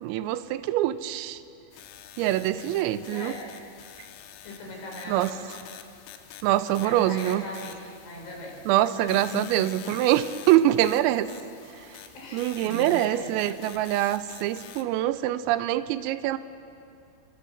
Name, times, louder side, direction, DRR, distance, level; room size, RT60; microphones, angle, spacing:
voice 1, 0.0-1.4 2.2-3.3 5.1-5.3 6.4-7.4 8.7-11.3 11.7-11.9 12.3-16.4, right 13 dB, 85° right, 13 dB, 3.4 m, -24 dB
sound 1, 1.7-14.8, left 10 dB, 80° left, 3.9 m, -47 dB
voice 2, 2.8-3.4 4.4-5.5 6.8-7.8 8.0-8.6 9.1-9.5 12.1-13.3, left 2 dB, 65° left, 0 dB, 7.1 m, -39 dB
30.0 x 24.5 x 7.2 m, 2.5 s
omnidirectional pair, 5.9 m